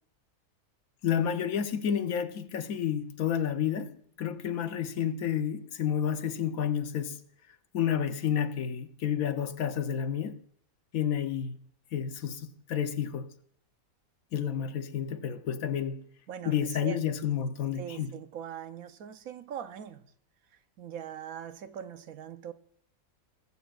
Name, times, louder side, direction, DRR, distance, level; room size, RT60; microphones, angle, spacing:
voice 1, 1.0-7.2 7.7-10.4 10.9-11.6 11.9-13.3 14.3-16.1 16.4-18.1, left 8 dB, 80° left, 1.3 m, -30 dB
voice 2, 16.3-17.0 17.8-20.1 20.8-22.5, right 9 dB, 75° right, 1.2 m, -41 dB
19.5 x 15.5 x 2.4 m
omnidirectional pair, 1.5 m